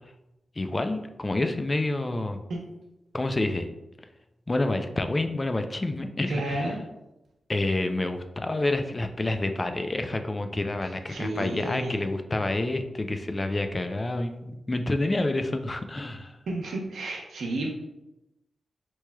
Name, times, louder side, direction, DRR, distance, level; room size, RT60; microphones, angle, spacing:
voice 1, 0.6-2.4 3.1-3.7 4.5-6.7 7.5-16.4, left 2 dB, 30° left, 7 dB, 0.4 m, -28 dB
voice 2, 6.3-6.8 10.8-12.0 16.5-17.7, right 1 dB, 85° right, 0 dB, 0.8 m, -32 dB
4.5 x 2.9 x 2.2 m, 0.92 s
cardioid pair, 65°, 0 cm